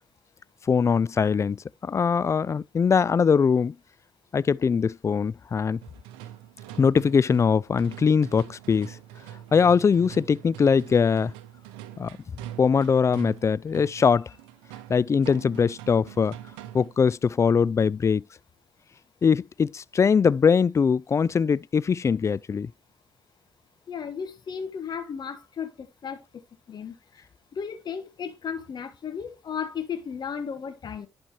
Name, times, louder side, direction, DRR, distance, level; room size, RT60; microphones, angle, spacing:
voice 1, 0.7-1.6 1.8-3.7 4.3-5.8 6.8-9.0 9.5-11.3 12.0-12.2 12.6-14.3 14.9-16.3 16.7-18.2 19.2-22.7, left 6 dB, 35° left, 0.3 m, -22 dB
sound 1, 5.8-17.1, right 12 dB, 80° right, 0.6 m, -44 dB
voice 2, 23.9-26.2 26.7-27.2 27.5-31.1, left 7 dB, 55° left, 1.4 m, -35 dB
11.0 x 4.4 x 3.0 m
hypercardioid pair, 45°, 9 cm